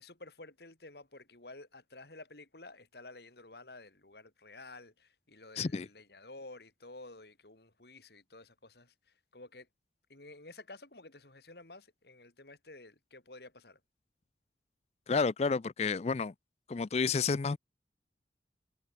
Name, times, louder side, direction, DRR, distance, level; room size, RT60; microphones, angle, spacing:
voice 1, 0.0-8.9 9.3-9.7 10.1-13.8, left 2 dB, 65° left, 3.1 m, -52 dB
voice 2, 5.6-5.9 15.1-16.3 16.7-17.6, left 4 dB, 35° left, 0.4 m, -30 dB
head